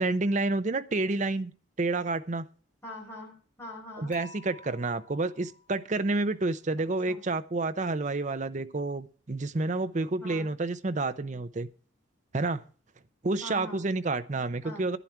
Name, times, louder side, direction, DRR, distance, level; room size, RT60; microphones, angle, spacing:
voice 1, 0.0-1.5 1.8-2.5 4.0-11.7 12.3-12.6 13.2-15.0, right 2 dB, 40° right, 12 dB, 0.7 m, -29 dB
voice 2, 2.8-4.2 7.1-7.2 10.2-10.5 13.4-13.8 14.6-14.8, left 1 dB, 15° left, -3 dB, 4.8 m, -43 dB
Dishes pots and pans / Chink clink, 4.1-6.2, left 1 dB, 10° right, 3.3 m, -51 dB
11.0 x 10.5 x 4.6 m, 0.40 s
head